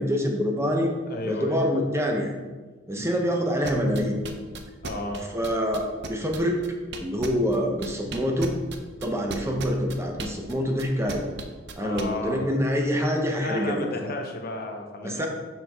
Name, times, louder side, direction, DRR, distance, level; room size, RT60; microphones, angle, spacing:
voice 1, 0.0-0.9 1.3-2.3 2.9-4.2 5.3-6.6 7.0-8.5 9.0-11.2 11.8-14.1 15.0-15.3, equal, 15° right, 2 dB, 0.8 m, -26 dB
voice 2, 1.1-1.7 3.0-3.2 4.8-5.3 11.8-12.5 13.4-15.3, left 2 dB, 55° left, 3 dB, 0.8 m, -33 dB
sound 1, 3.7-7.6 7.8-12.0, right 4 dB, 65° right, 0.7 m, -35 dB
5.9 x 5.8 x 3.5 m, 1.3 s
head